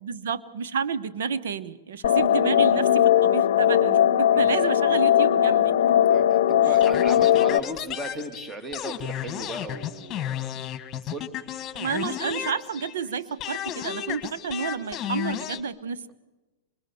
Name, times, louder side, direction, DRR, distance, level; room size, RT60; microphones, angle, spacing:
voice 1, 0.0-5.7 11.7-16.1, right 6 dB, 80° right, 13 dB, 1.1 m, -30 dB
sound 1, 2.0-7.6, left 10 dB, 70° left, 0.7 m, -19 dB
voice 2, 6.1-10.5 11.1-11.3, right 1 dB, 10° right, 7 dB, 1.7 m, -36 dB
sound 2, 6.8-13.1 13.4-15.6, left 11 dB, 25° left, 1.7 m, -33 dB
25.5 x 22.0 x 7.0 m, 1.1 s
hypercardioid pair, 145°, 0 cm